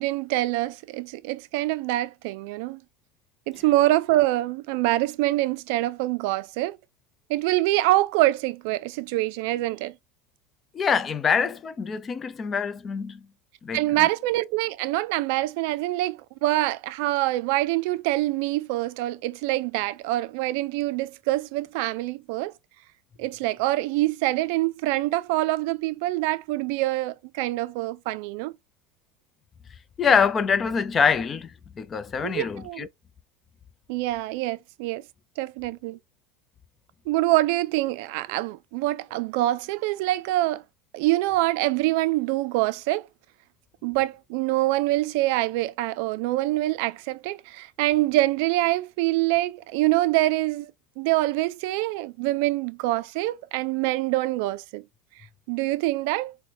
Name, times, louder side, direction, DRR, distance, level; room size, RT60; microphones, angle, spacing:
voice 1, 0.0-2.8 3.5-6.8 7.3-9.9 13.7-22.5 23.2-28.5 32.2-32.9 33.9-35.0 35.4-36.0 37.1-40.6 40.9-43.1 43.8-54.8 55.5-56.4, right 17 dB, 70° right, 0.3 m, -25 dB
voice 2, 10.7-13.2 13.6-13.8 30.0-32.9, left 6 dB, 30° left, 0.5 m, -24 dB
3.9 x 2.1 x 2.9 m
supercardioid pair, 110°, 0 cm